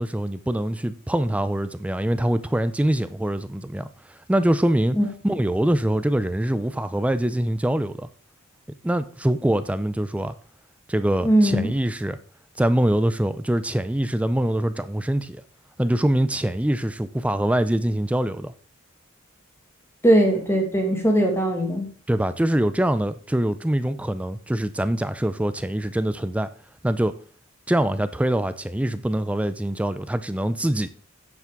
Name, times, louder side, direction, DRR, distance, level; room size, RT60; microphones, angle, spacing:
voice 1, 0.0-5.0 5.2-8.1 8.8-10.3 10.9-12.2 12.6-15.4 15.8-18.5 22.1-26.5 26.8-27.2 27.7-30.9, right 1 dB, 5° right, 0.4 m, -24 dB
voice 2, 11.2-11.7 20.0-21.9, right 1 dB, 10° left, 1.8 m, -19 dB
9.7 x 7.2 x 3.6 m
head